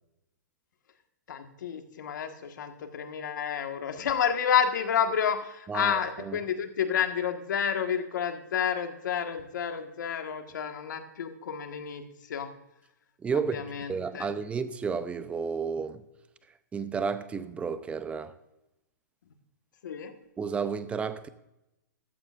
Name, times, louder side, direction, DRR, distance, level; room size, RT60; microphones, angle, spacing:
voice 1, 1.3-12.5 13.3-14.3 19.8-20.2, left 8 dB, 70° left, 1.7 m, -30 dB
voice 2, 5.7-6.4 13.2-13.6 13.9-16.0 16.7-18.3 20.4-21.3, right 5 dB, 10° right, 0.6 m, -32 dB
15.0 x 13.0 x 2.6 m
hypercardioid pair, 140°, 10 cm